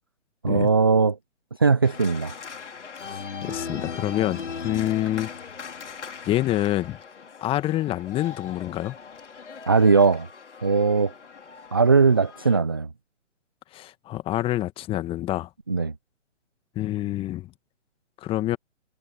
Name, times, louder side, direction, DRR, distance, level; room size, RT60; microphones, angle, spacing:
voice 1, 0.4-1.2 1.6-2.3 9.7-10.3 10.6-11.1 11.7-12.9 15.7-15.9, right 4 dB, 20° right, 0.3 m, -19 dB
Organ, 1.8-12.6, left 6 dB, 70° left, 4.5 m, -39 dB
voice 2, 3.0-5.3 6.2-7.0 7.4-8.9 13.7-15.5 16.7-17.5 18.2-18.6, left 14 dB, 15° left, 1.3 m, -27 dB
figure-of-eight pair, 135°, 37 cm